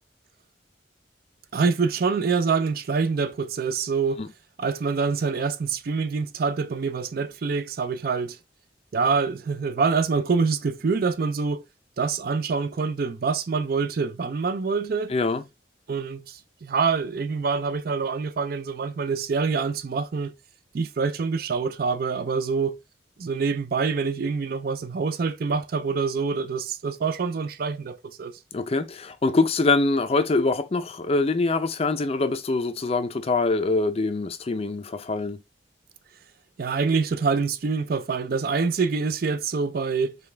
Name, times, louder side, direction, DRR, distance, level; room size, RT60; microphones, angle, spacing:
voice 1, 1.5-4.2 4.6-8.4 8.9-11.6 12.0-15.1 15.9-20.3 20.7-22.8 23.2-28.3 36.6-40.2, right 5 dB, 55° right, 0.4 m, -26 dB
voice 2, 15.1-15.4 28.5-35.4, left 3 dB, 35° left, 0.4 m, -24 dB
5.1 x 2.3 x 3.2 m
head